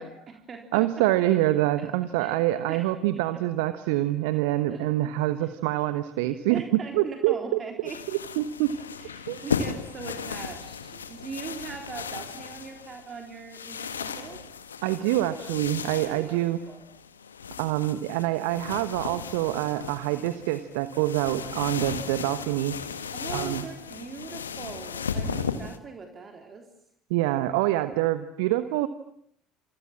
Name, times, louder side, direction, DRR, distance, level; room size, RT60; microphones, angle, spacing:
voice 1, 0.0-1.1 1.8-1.9 2.2-2.4 2.7-3.4 4.7-4.9 6.5-8.0 8.7-14.4 16.0-16.8 23.1-26.7, right 5 dB, 35° right, 4 dB, 3.7 m, -41 dB
voice 2, 0.7-6.6 6.9-7.3 8.4-8.7 9.3-9.4 14.8-16.6 17.6-22.8 23.3-23.6 27.1-28.9, right 15 dB, 65° right, 13 dB, 1.1 m, -26 dB
sound 1, 7.8-25.8, left 6 dB, 80° left, 1.6 m, -36 dB
28.5 x 28.0 x 7.5 m, 0.70 s
figure-of-eight pair, 60°, 0 cm